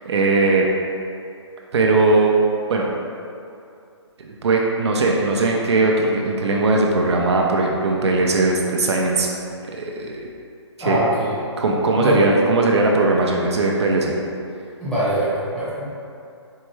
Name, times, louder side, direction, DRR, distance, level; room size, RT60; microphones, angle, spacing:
voice 1, 0.0-0.6 1.7-2.3 2.7-2.9 4.2-9.3 9.8-10.2 10.8-11.0 11.6-14.1, right 3 dB, 65° right, -1 dB, 0.5 m, -19 dB
voice 2, 10.8-11.3 11.9-12.3 14.8-15.8, right 1 dB, 5° left, -13 dB, 0.8 m, -22 dB
4.5 x 2.2 x 3.0 m, 2.5 s
hypercardioid pair, 155°, 15 cm